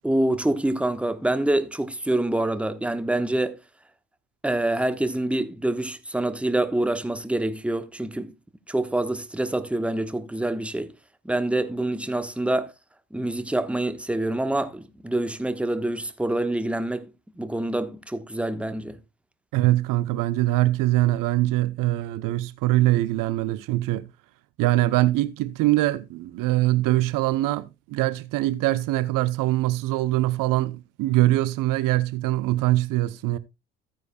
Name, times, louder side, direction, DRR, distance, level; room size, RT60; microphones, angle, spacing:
voice 1, 0.0-3.6 4.4-8.3 8.7-10.9 11.2-12.7 13.1-17.1 17.4-19.0, right 1 dB, 5° right, 1.1 m, -26 dB
voice 2, 19.5-24.1 24.6-33.4, right 16 dB, 60° right, 0.8 m, -23 dB
14.0 x 9.4 x 2.2 m
hypercardioid pair, 60°, 37 cm